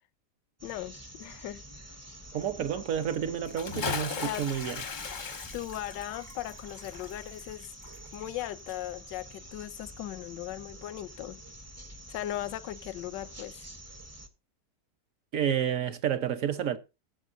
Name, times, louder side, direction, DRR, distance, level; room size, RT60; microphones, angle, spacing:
voice 1, 0.6-1.6 4.2-4.5 4.9-5.1 5.5-7.7 8.1-11.4 12.1-13.7, left 13 dB, 85° left, 1.3 m, -38 dB
sound 1, 0.6-14.3, right 1 dB, 15° right, 0.6 m, -48 dB
voice 2, 2.3-4.8 15.3-16.8, right 9 dB, 55° right, 1.2 m, -30 dB
Bathtub (filling or washing) / Splash splatter, 3.4-8.4 8.7-8.8, left 5 dB, 45° left, 0.6 m, -37 dB
15.5 x 7.8 x 2.6 m
omnidirectional pair, 1.9 m